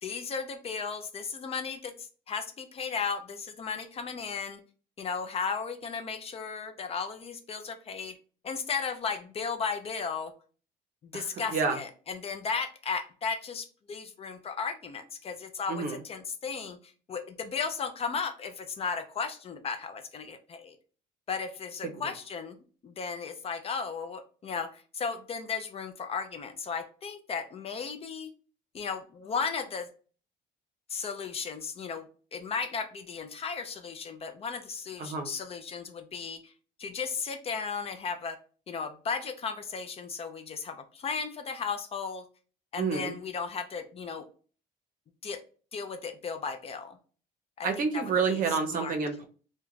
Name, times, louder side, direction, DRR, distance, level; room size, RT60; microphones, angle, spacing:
voice 1, 0.0-4.6 5.0-8.2 8.4-10.3 11.0-20.8 21.3-22.6 22.8-28.3 28.7-29.9 30.9-36.5 36.8-38.4 38.7-42.2 42.7-44.3 45.2-45.4 45.7-47.0 47.6-48.4 48.7-49.0, left 5 dB, 35° left, 7 dB, 0.4 m, -35 dB
voice 2, 42.8-43.2 47.6-49.2, right 5 dB, 55° right, 5 dB, 0.6 m, -28 dB
2.3 x 2.2 x 3.1 m, 0.39 s
cardioid pair, 110°, 17 cm